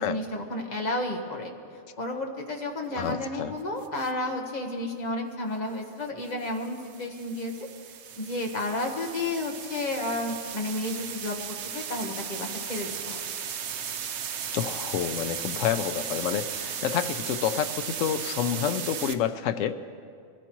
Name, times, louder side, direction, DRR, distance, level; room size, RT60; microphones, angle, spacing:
voice 1, 0.0-1.5 2.0-7.5 8.1-11.4 11.7-13.2, left 2 dB, 35° left, 2 dB, 1.3 m, -32 dB
voice 2, 2.9-3.5 14.5-19.8, left 9 dB, 80° left, 10 dB, 1.0 m, -29 dB
sound 1, 3.8-4.1 6.2-19.1, right 8 dB, 65° right, 0.9 m, -36 dB
22.0 x 13.5 x 3.0 m, 2.3 s
omnidirectional pair, 1.3 m